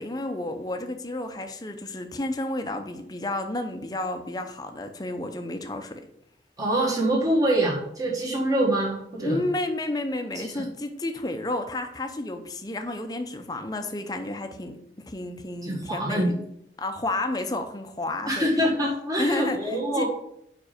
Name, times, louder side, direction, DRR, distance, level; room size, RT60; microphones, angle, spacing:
voice 1, 0.0-6.0 9.2-16.4 16.8-18.5 19.2-20.0, left 2 dB, 20° left, 6 dB, 0.6 m, -31 dB
voice 2, 6.6-9.4 10.3-10.6 15.6-16.3 18.3-20.0, right 1 dB, 20° right, -3 dB, 1.5 m, -25 dB
5.1 x 4.9 x 5.0 m, 0.74 s
head